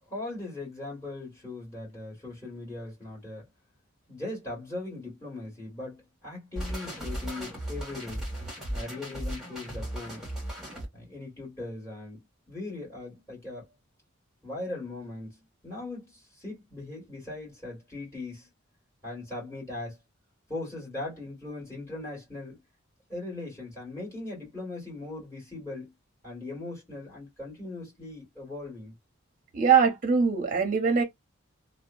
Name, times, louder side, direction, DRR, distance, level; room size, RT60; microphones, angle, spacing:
voice 1, 0.1-3.5 4.1-8.2 8.7-10.3 10.9-13.6 14.4-18.5 19.0-20.0 20.5-22.6 23.1-25.9 26.2-28.9, left 2 dB, 15° left, 1.7 m, -39 dB
sound 1, 6.6-10.9, right 1 dB, 5° right, 1.5 m, -36 dB
voice 2, 29.5-31.0, right 6 dB, 40° right, 0.7 m, -22 dB
2.8 x 2.1 x 2.4 m
head